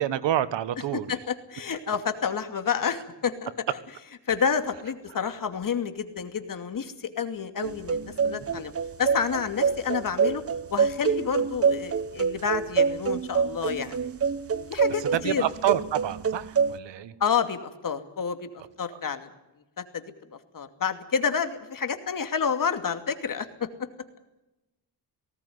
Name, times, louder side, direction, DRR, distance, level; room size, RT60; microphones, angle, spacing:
voice 1, 0.0-1.1 15.1-17.1 18.9-19.0, right 11 dB, 80° right, 14 dB, 1.5 m, -27 dB
voice 2, 1.1-3.5 4.3-8.7 9.0-10.4 10.7-14.0 14.7-15.4 17.2-18.5 18.8-19.3 19.8-20.0 20.5-23.9, left 6 dB, 50° left, 8 dB, 2.6 m, -29 dB
sound 1, 7.6-16.8, right 6 dB, 35° right, 0.9 m, -26 dB
19.5 x 17.5 x 9.6 m, 0.97 s
cardioid pair, 100°, 43 cm